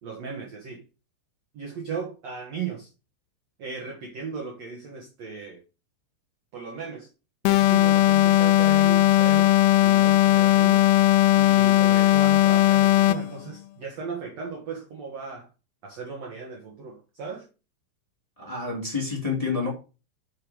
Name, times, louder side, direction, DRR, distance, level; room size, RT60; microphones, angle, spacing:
voice 1, 0.0-0.8 1.5-2.9 3.6-5.6 6.5-7.1 7.4-10.8 11.3-15.5 15.8-17.5, right 5 dB, 55° right, 2.1 m, -36 dB
sound 1, 7.4-13.3, left 15 dB, 85° left, 2.3 m, -18 dB
voice 2, 18.4-19.7, left 4 dB, 10° left, 3.1 m, -28 dB
8.6 x 5.8 x 4.7 m
omnidirectional pair, 4.7 m